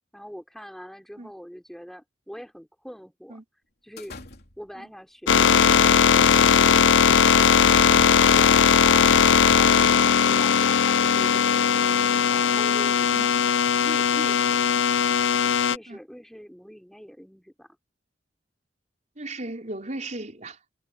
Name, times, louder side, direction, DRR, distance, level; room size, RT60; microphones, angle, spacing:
voice 1, 0.1-3.4 3.8-4.1 12.3-13.3 15.7-17.7, equal, ahead, 3.5 m, -42 dB
sound 1, 4.0-4.8 5.6-5.9 6.3-6.4 7.1-10.0, left 2 dB, 55° left, 3.6 m, -44 dB
sound 2, 5.3-15.8, left 7 dB, 90° left, 0.5 m, -19 dB
voice 2, 19.2-20.6, right 2 dB, 40° right, 4.7 m, -36 dB
head